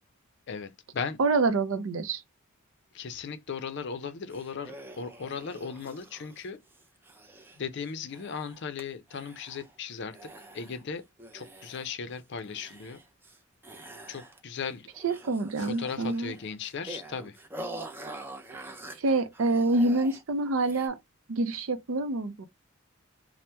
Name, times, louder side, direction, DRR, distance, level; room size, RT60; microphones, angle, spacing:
voice 1, 0.5-1.2 2.9-6.6 7.6-11.0 11.3-13.0 14.1-14.9 15.6-17.4, left 6 dB, 55° left, 0.5 m, -37 dB
voice 2, 1.2-2.2 15.0-16.3 19.0-21.0 21.3-22.5, right 2 dB, 70° right, 0.5 m, -26 dB
sound 1, 4.3-8.8 9.1-9.8 10.1-10.8 11.2-12.1 12.4-13.4 13.6-14.6 14.9-20.2 20.6-20.9, right 2 dB, 10° right, 0.5 m, -46 dB
2.8 x 2.1 x 3.3 m
head